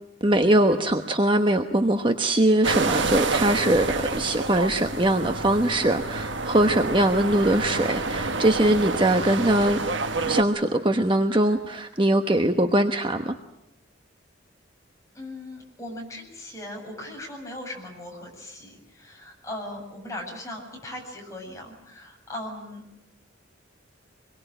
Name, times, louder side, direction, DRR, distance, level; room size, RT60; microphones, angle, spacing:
voice 1, 0.2-3.9 4.1-9.8 10.2-13.3, right 1 dB, 25° right, 6 dB, 1.1 m, -22 dB
sound 1, 2.6-10.4, right 3 dB, 70° right, 1.5 m, -28 dB
voice 2, 15.1-22.8, left 1 dB, 15° left, 0 dB, 7.6 m, -38 dB
26.5 x 22.5 x 9.0 m, 0.84 s
head